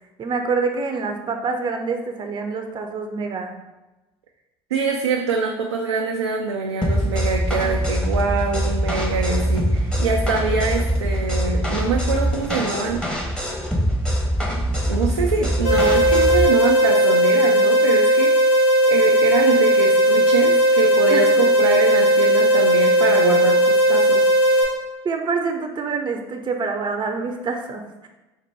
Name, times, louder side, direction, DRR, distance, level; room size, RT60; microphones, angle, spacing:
voice 1, 0.2-3.5 21.1-21.3 25.0-28.1, right 4 dB, 35° right, 4 dB, 0.6 m, -26 dB
voice 2, 4.7-13.0 14.9-18.6 18.8-24.3, right 4 dB, 90° right, 0 dB, 0.4 m, -24 dB
sound 1, 6.8-16.5, equal, 5° left, 1.0 m, -23 dB
sound 2, 15.6-24.6, equal, 85° left, 1.3 m, -16 dB
4.1 x 2.1 x 4.5 m, 1.0 s
hypercardioid pair, 60°, 14 cm